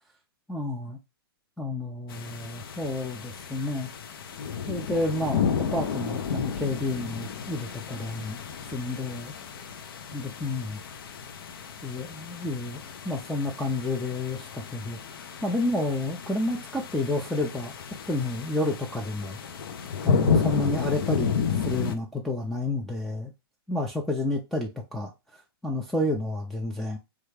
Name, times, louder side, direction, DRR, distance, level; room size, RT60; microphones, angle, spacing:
voice 1, 0.5-1.0 1.6-3.9 4.7-5.4 5.7-8.4 8.7-9.3 10.1-10.8 11.8-15.0 15.4-17.7 18.1-19.4 20.0-23.3 23.7-27.0, left 2 dB, ahead, 0.4 m, -30 dB
sound 1, 2.1-22.0, left 6 dB, 65° left, 0.5 m, -32 dB
3.2 x 2.4 x 3.2 m
hypercardioid pair, 125°, 13 cm